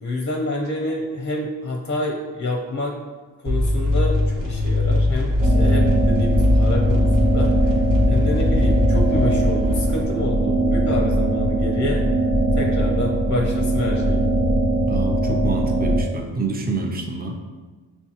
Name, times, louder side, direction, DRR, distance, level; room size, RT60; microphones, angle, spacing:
voice 1, 0.0-3.0 3.4-7.5 8.1-12.0 12.6-14.2, left 1 dB, 25° left, 0 dB, 0.5 m, -28 dB
sound 1, 3.5-10.0, left 2 dB, 45° right, 1.0 m, -20 dB
sound 2, 5.4-16.0, right 1 dB, 80° right, 1.1 m, -21 dB
voice 2, 14.9-17.4, right 3 dB, 20° right, 3 dB, 0.5 m, -27 dB
6.8 x 2.3 x 2.8 m, 1.3 s
cardioid pair, 85°, 45 cm